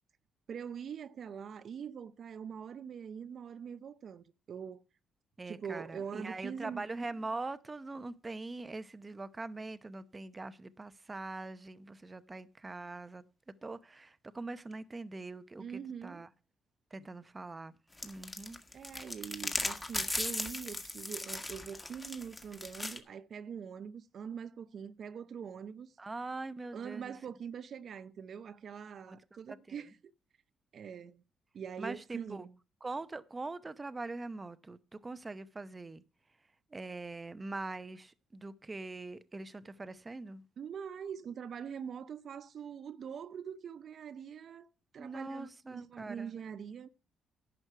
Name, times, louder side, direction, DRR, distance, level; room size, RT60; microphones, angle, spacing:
voice 1, 0.5-4.8 5.5-6.9 15.6-16.3 18.7-25.9 26.7-29.9 30.7-31.2 31.5-32.6 40.6-44.7 44.9-46.9, right 7 dB, 55° right, 0.7 m, -43 dB
voice 2, 5.4-13.2 13.6-16.3 16.9-17.7 18.0-18.6 26.0-27.1 29.1-29.2 29.5-29.6 31.8-32.5 32.8-36.0 36.7-40.4 45.0-46.3, right 3 dB, 25° right, 0.8 m, -42 dB
sound 1, 18.0-23.0, left 2 dB, 15° left, 1.8 m, -37 dB
11.0 x 6.2 x 6.7 m
cardioid pair, 90°, 0 cm